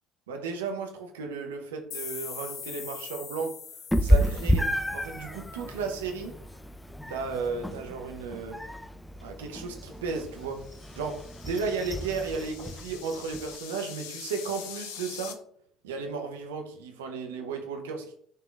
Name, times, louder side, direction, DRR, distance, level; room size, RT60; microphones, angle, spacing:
voice 1, 0.3-3.5 4.0-6.3 7.1-8.6 9.2-10.6 10.9-15.4 15.8-18.2, right 4 dB, 85° right, 3 dB, 0.8 m, -34 dB
sound 1, 1.9-6.6, left 7 dB, 55° left, 1.0 m, -43 dB
Meow, 3.9-13.6, equal, 5° left, 0.5 m, -31 dB
sound 2, 10.2-15.3, left 9 dB, 75° left, 0.7 m, -44 dB
10.5 x 3.7 x 2.4 m, 0.64 s
hypercardioid pair, 60°, 0 cm